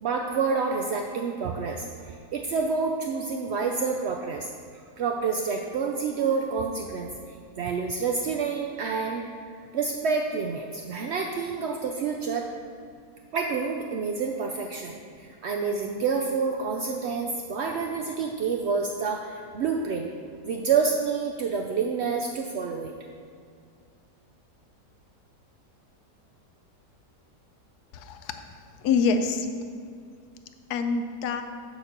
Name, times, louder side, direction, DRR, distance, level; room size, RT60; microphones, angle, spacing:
voice 1, 0.0-4.5 5.0-7.1 7.6-9.2 9.7-12.5 13.3-20.1 20.4-22.9, right 5 dB, 75° right, 2 dB, 0.6 m, -28 dB
voice 2, 27.9-28.4 28.8-29.5 30.7-31.4, left 5 dB, 75° left, 7 dB, 1.2 m, -25 dB
7.1 x 5.1 x 6.6 m, 2.2 s
omnidirectional pair, 1.7 m